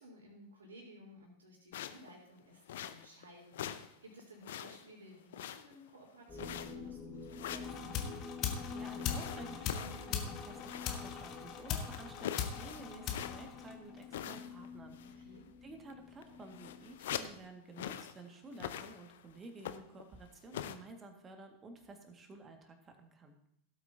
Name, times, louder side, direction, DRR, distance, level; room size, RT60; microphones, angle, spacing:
voice 1, 0.0-8.0 15.0-15.5, equal, 70° right, -2 dB, 4.1 m, -56 dB
sound 1, 1.7-2.1 2.7-3.2 3.5-3.9 4.2-4.9 5.3-5.9 6.4-6.9 7.3-7.8 9.0-11.1 11.4-11.5 11.9-13.6 14.1-14.7 14.9-15.2 15.9-16.0 16.2-17.4 17.8-18.2 18.5-19.2 19.6-20.0 20.5-20.8, left 10 dB, 55° left, 0.7 m, -43 dB
sound 2, 6.3-17.4, left 4 dB, 15° left, 3.5 m, -49 dB
sound 3, 7.6-14.2, left 8 dB, 35° left, 1.4 m, -40 dB
voice 2, 8.7-15.2 15.6-23.4, right 2 dB, 20° right, 4 dB, 2.0 m, -52 dB
17.0 x 8.3 x 2.9 m, 0.75 s
figure-of-eight pair, 90°, 0 cm